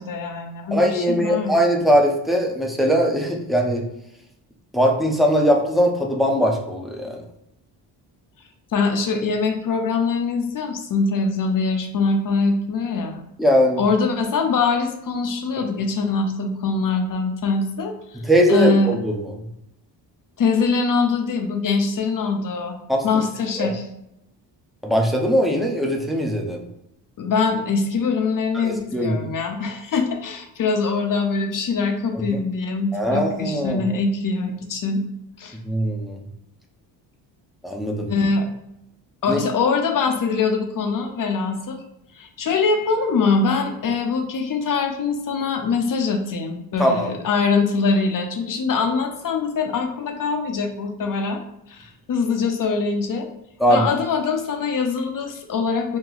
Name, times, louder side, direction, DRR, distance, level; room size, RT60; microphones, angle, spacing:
voice 1, 0.0-1.6 8.7-13.2 13.8-18.2 18.5-18.9 20.4-22.8 23.0-23.8 27.2-35.0 35.4-35.6 38.1-38.5 39.2-41.8 42.2-51.4 51.7-53.3 53.7-56.0, left 4 dB, 45° left, 4 dB, 0.7 m, -23 dB
voice 2, 0.7-3.8 4.7-7.2 13.4-13.8 18.2-19.3 22.9-23.0 23.6-23.7 24.8-26.6 28.6-29.2 32.3-32.4 32.9-33.8 35.6-36.2 37.6-38.1 39.3-39.4 46.8-47.1 53.6-53.8, equal, ahead, 0 dB, 0.6 m, -20 dB
2.9 x 2.2 x 3.9 m, 0.81 s
supercardioid pair, 65°, 47 cm